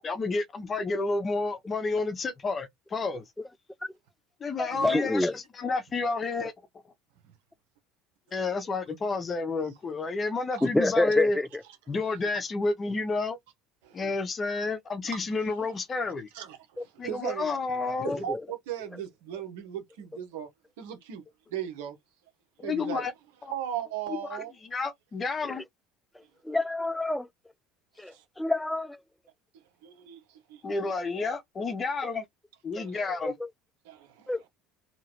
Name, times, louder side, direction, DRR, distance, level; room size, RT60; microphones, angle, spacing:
voice 1, 0.0-3.2 4.4-6.5 8.3-11.4 11.9-13.4 13.9-16.3 17.0-18.2 22.6-23.1 23.4-23.5 24.7-25.6 30.6-32.2 32.6-33.3, left 3 dB, 30° left, 0.7 m, -30 dB
voice 2, 4.6-5.3 10.6-11.5 26.4-27.3 28.0-29.0 32.8-32.9 33.2-33.3 34.3-34.4, left 2 dB, 5° left, 0.4 m, -27 dB
voice 3, 13.8-14.1 15.1-15.3 16.3-17.5 18.0-20.5 20.8-21.2 21.5-22.0 22.6-23.1 23.5-24.5 27.9-28.2 29.5-30.9 32.7-33.0 33.8-34.5, right 10 dB, 80° right, 0.9 m, -38 dB
2.8 x 2.5 x 2.9 m
supercardioid pair, 90°, 0 cm